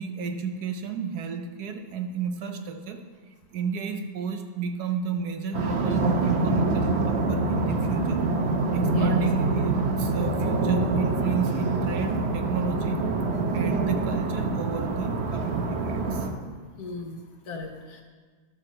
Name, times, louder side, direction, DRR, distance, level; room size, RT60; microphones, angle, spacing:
voice 1, 0.0-3.0 3.5-8.2 8.7-13.0 13.5-16.3, right 6 dB, 75° right, 6 dB, 1.3 m, -32 dB
sound 1, 5.5-16.3, right 3 dB, 50° right, 1.0 m, -25 dB
voice 2, 16.8-18.0, left 3 dB, 70° left, 2 dB, 1.6 m, -38 dB
12.0 x 4.5 x 6.3 m, 1.5 s
omnidirectional pair, 1.8 m